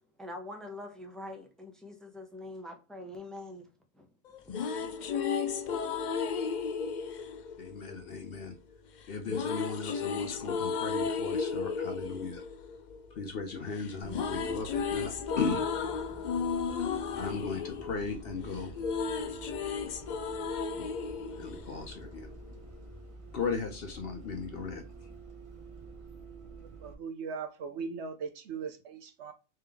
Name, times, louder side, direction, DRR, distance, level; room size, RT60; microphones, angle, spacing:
voice 1, 0.2-3.7 3.9-4.1 4.5-4.6, left 1 dB, ahead, 0.5 m, -44 dB
sound 1, 4.3-8.4 9.3-13.5 13.8-22.3, left 5 dB, 80° left, 0.4 m, -34 dB
voice 2, 7.6-8.6 9.1-12.4 13.1-15.6 16.8-18.8 20.8-20.9 21.4-22.3 23.3-24.8, left 4 dB, 55° left, 0.7 m, -37 dB
Bus, 14.0-26.9, right 3 dB, 30° right, 0.9 m, -48 dB
voice 3, 26.8-29.3, right 5 dB, 65° right, 0.8 m, -39 dB
3.6 x 3.3 x 3.3 m
omnidirectional pair, 1.4 m